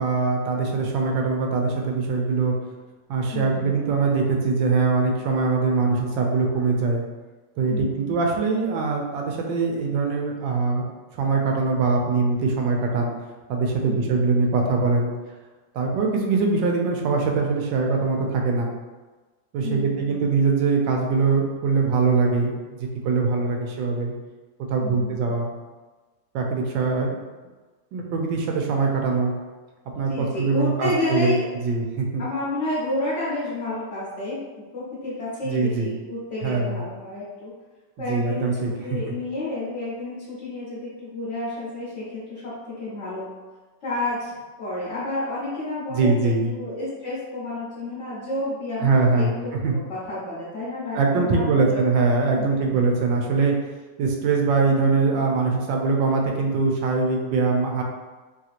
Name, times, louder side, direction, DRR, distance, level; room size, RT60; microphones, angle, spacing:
voice 1, 0.0-2.5 3.1-7.0 7.6-10.8 11.1-13.1 13.5-15.1 15.7-18.7 19.5-24.1 24.7-25.5 26.3-27.2 27.9-29.3 30.0-31.3 31.6-32.2 35.4-35.9 36.4-36.8 38.1-39.1 45.9-46.5 48.8-49.8 50.9-53.5 54.0-57.8, right 4 dB, 85° right, 1 dB, 1.3 m, -22 dB
voice 2, 3.3-3.8 7.7-8.2 13.8-14.3 19.6-20.3 24.8-25.3 30.1-31.5 32.2-37.5 38.0-42.5 42.8-43.3 43.8-49.6 49.9-51.8 52.3-53.0, left 2 dB, 55° left, -10 dB, 0.9 m, -30 dB
3.2 x 2.8 x 2.4 m, 1.3 s
omnidirectional pair, 2.0 m